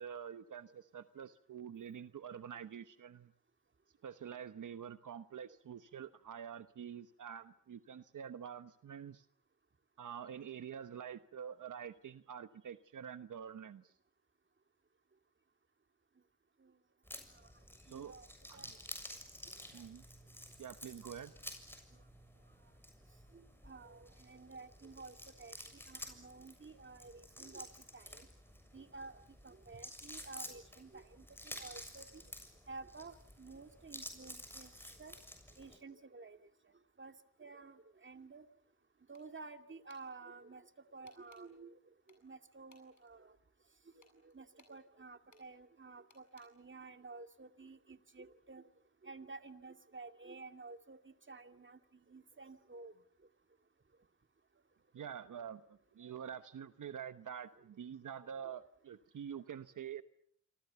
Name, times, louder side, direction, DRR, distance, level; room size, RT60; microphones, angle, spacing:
voice 1, 0.0-3.3 4.0-9.3 10.0-13.9 17.9-18.2 18.5-18.7 19.7-20.0 20.6-21.3 54.9-60.0, right 8 dB, 75° right, 11 dB, 1.1 m, -47 dB
sound 1, 17.0-35.8, left 1 dB, 5° left, 7.0 m, -52 dB
voice 2, 17.9-18.3 18.5-18.8 22.6-22.7 23.3-28.3 28.7-32.2 32.7-35.1 35.6-36.4 37.0-37.1 37.4-38.5 39.1-41.9 42.2-43.4 44.2-48.7 49.0-51.8 52.1-52.9 56.0-56.2, right 3 dB, 40° right, 8 dB, 2.4 m, -52 dB
sound 2, 39.1-39.5 39.9-40.1 41.1-41.5 42.1-43.1 44.0-44.8 45.3-45.5 46.1-46.5, left 5 dB, 65° left, 7.7 m, -66 dB
28.0 x 26.0 x 7.0 m, 0.67 s
cardioid pair, 65°, 31 cm